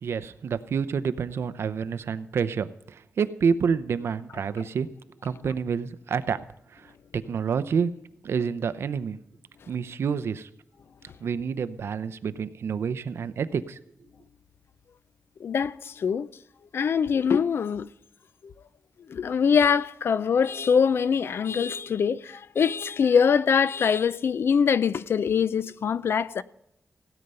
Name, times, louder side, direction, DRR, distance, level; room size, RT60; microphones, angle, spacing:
voice 1, 0.0-2.7 3.2-4.9 5.2-6.4 6.7-6.8 7.1-7.9 8.2-9.2 9.7-10.5 11.2-13.8, right 6 dB, 65° right, 0.7 m, -28 dB
voice 2, 15.4-16.3 16.7-17.9 18.4-18.5 19.1-26.4, left 6 dB, 60° left, 0.4 m, -23 dB
17.0 x 9.1 x 5.5 m
wide cardioid pair, 160°, 5 cm